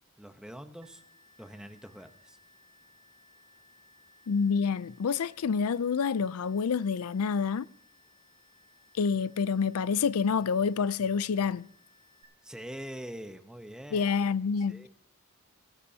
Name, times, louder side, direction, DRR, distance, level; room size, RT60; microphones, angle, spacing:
voice 1, 0.2-1.0 1.4-2.4 12.4-14.1 14.7-14.9, equal, 5° right, 0.8 m, -44 dB
sound 1, 0.8-12.2, left 2 dB, 85° right, 4.6 m, -62 dB
voice 2, 4.3-7.7 8.9-11.7 13.9-14.9, left 5 dB, 80° left, 0.4 m, -28 dB
22.0 x 14.0 x 2.8 m
head